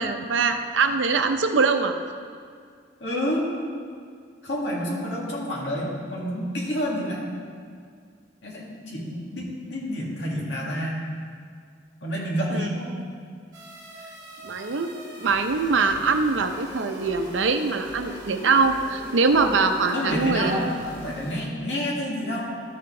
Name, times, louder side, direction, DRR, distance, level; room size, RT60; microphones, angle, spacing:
voice 1, 0.0-1.9 12.5-12.7 14.4-20.6, right 4 dB, 85° right, 7 dB, 0.6 m, -23 dB
voice 2, 3.0-3.5 4.4-7.3 8.4-11.1 12.0-13.0 19.9-22.5, equal, 70° left, -4 dB, 1.9 m, -29 dB
sound 1, 13.5-21.4, right 1 dB, 25° right, 2.3 m, -42 dB
12.5 x 5.9 x 3.7 m, 2.1 s
head